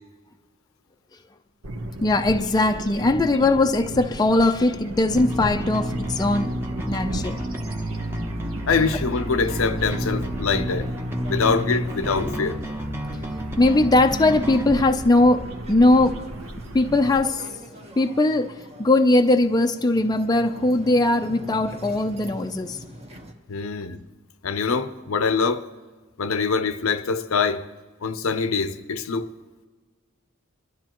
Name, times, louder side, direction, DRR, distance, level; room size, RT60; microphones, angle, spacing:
sound 1, 1.6-17.3, right 1 dB, 75° right, 1.1 m, -35 dB
voice 1, 2.0-6.6 6.9-7.4 12.2-12.4 13.6-16.2 16.7-17.5 18.0-18.5 18.8-22.8, left 2 dB, 20° left, 0.5 m, -20 dB
Bass guitar, 5.1-14.7, equal, 10° right, 0.8 m, -30 dB
sound 2, 5.1-23.3, right 1 dB, 30° right, 1.1 m, -45 dB
voice 2, 8.7-10.9 11.3-12.6 23.5-24.0 24.4-25.6 26.2-27.7 28.0-29.3, left 5 dB, 70° left, 0.7 m, -24 dB
22.0 x 12.5 x 3.0 m
head